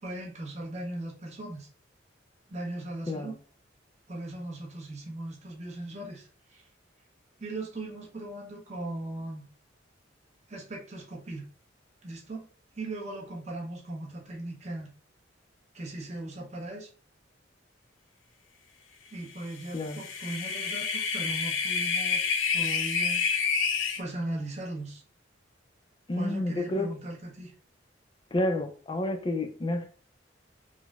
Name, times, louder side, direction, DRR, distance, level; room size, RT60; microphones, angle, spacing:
voice 1, 0.0-1.7 2.5-3.3 4.1-6.6 7.4-9.5 10.5-11.5 12.0-12.5 12.7-14.9 15.7-16.9 19.1-23.3 24.0-25.0 26.1-27.5, right 1 dB, 35° right, -1 dB, 0.7 m, -38 dB
sound 1, 19.7-24.0, left 5 dB, 85° left, 0.4 m, -28 dB
voice 2, 26.1-26.9 28.3-29.9, left 1 dB, 25° left, 6 dB, 0.4 m, -29 dB
3.8 x 2.0 x 2.3 m, 0.41 s
head